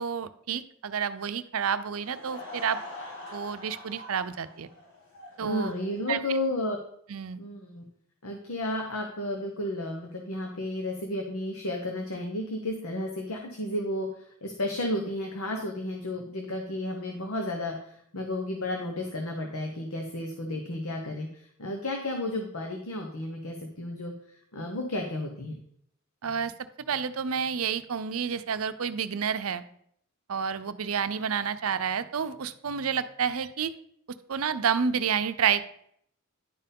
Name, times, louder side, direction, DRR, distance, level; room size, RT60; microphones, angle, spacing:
voice 1, 0.0-2.8 3.3-4.7 5.4-5.7 6.1-6.2 7.1-7.4 26.2-26.5 26.9-29.6 30.3-33.7 34.3-35.7, right 7 dB, 75° right, 12 dB, 0.6 m, -29 dB
Laughter / Crowd, 1.8-6.4, left 2 dB, 60° left, 4.2 m, -44 dB
voice 2, 5.4-6.8 7.4-7.8 8.2-14.1 14.4-24.1 24.5-25.6, left 1 dB, 85° left, 3 dB, 1.1 m, -32 dB
10.5 x 4.5 x 5.3 m, 0.68 s
head